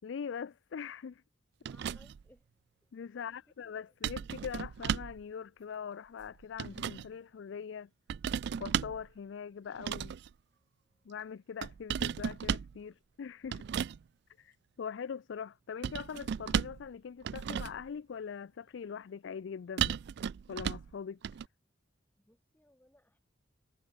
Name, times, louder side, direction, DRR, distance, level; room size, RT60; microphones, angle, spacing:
voice 1, 0.0-1.2 2.9-7.9 8.6-10.2 11.1-13.7 14.4-19.9 20.5-21.2, left 7 dB, 70° left, 0.4 m, -42 dB
voice 2, 1.6-2.5 2.8-2.9 3.1-3.4 3.6-3.9 10.5-11.1 12.9-13.0 13.6-13.7 14.4-14.5 22.2-23.2, left 1 dB, 10° left, 2.6 m, -66 dB
sound 1, 1.7-2.3 4.0-5.2 6.2-7.1 8.1-9.1 9.8-10.3 11.6-12.8 13.5-14.0 15.8-16.9 17.2-17.9 19.8-20.9 21.2-21.5, right 8 dB, 60° right, 0.3 m, -35 dB
head